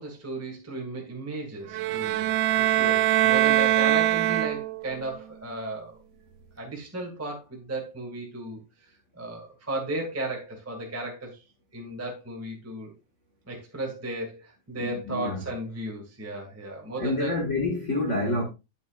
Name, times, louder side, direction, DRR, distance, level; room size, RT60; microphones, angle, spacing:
voice 1, 0.0-2.2 2.6-6.0 6.5-11.4 11.7-12.9 13.5-17.4, right 2 dB, 10° right, 0.9 m, -35 dB
sound 1, 1.7-4.9, right 14 dB, 80° right, 2.1 m, -23 dB
voice 2, 14.8-15.4 17.0-18.4, left 2 dB, 75° left, 0.6 m, -28 dB
9.2 x 8.2 x 2.4 m
omnidirectional pair, 4.1 m